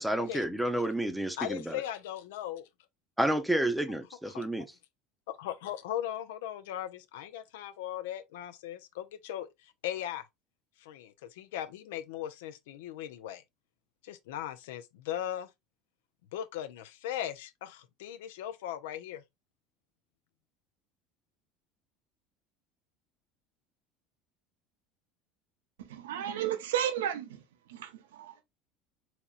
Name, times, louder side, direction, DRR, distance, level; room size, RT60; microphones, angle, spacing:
voice 1, 0.0-1.8 3.2-4.7, right 1 dB, 5° right, 0.6 m, -30 dB
voice 2, 1.4-2.7 4.3-4.4 5.3-10.2 10.8-13.4 14.0-15.5 16.3-19.2, left 11 dB, 85° left, 0.4 m, -38 dB
voice 3, 25.8-27.4 27.7-28.4, right 10 dB, 90° right, 0.6 m, -33 dB
4.0 x 2.9 x 2.3 m
supercardioid pair, 90°, 0 cm